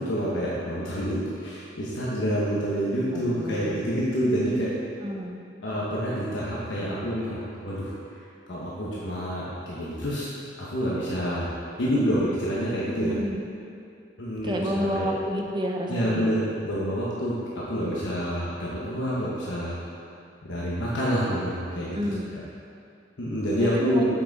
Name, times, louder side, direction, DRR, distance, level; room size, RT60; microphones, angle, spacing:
voice 1, 0.0-4.8 5.6-8.0 8.5-10.3 10.6-11.5 11.8-13.2 14.2-15.1 15.9-19.8 20.4-22.1 23.2-24.1, equal, 70° left, -7 dB, 1.1 m, -27 dB
voice 2, 3.1-3.9 5.0-5.4 13.0-13.5 14.4-16.3 21.9-22.4 23.6-24.1, equal, 25° right, 1 dB, 0.7 m, -30 dB
7.4 x 5.7 x 4.0 m, 2.5 s
head